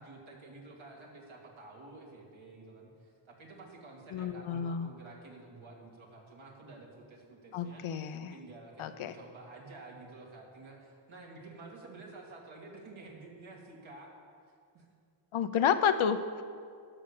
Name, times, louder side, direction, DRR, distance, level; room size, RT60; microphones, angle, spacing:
voice 1, 0.0-7.8 8.3-14.1 14.7-14.9 16.0-16.1, right 3 dB, 75° right, -2 dB, 2.5 m, -50 dB
voice 2, 4.1-4.9 7.5-8.3 8.8-9.1 15.3-16.4, left 8 dB, 85° left, 10 dB, 0.7 m, -30 dB
11.0 x 6.8 x 7.2 m, 2.2 s
cardioid pair, 90°, 48 cm